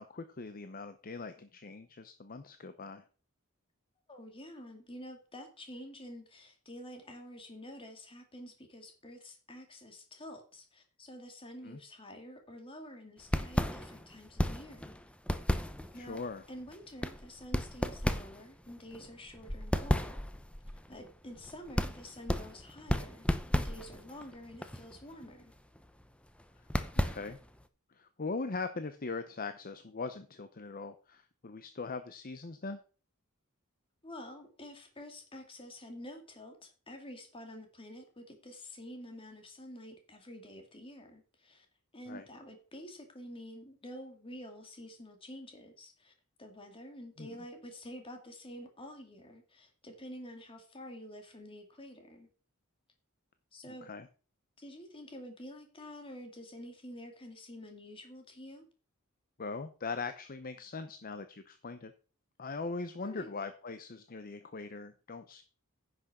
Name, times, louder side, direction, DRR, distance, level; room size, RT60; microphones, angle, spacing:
voice 1, 0.0-3.0 11.6-11.8 15.9-16.4 26.9-27.4 28.0-32.8 42.1-42.2 47.2-47.4 53.8-54.1 59.4-61.9 62.4-65.4, left 4 dB, 45° left, 9 dB, 0.7 m, -41 dB
voice 2, 4.1-14.9 15.9-16.2 16.5-20.2 20.9-23.3 23.5-25.5 34.0-41.7 41.9-46.1 46.4-52.3 53.5-53.9 54.6-58.7 63.0-63.3, left 1 dB, 25° left, 4 dB, 2.2 m, -48 dB
sound 1, 13.2-27.6, equal, 5° left, 0.7 m, -35 dB
10.0 x 6.2 x 5.9 m, 0.38 s
head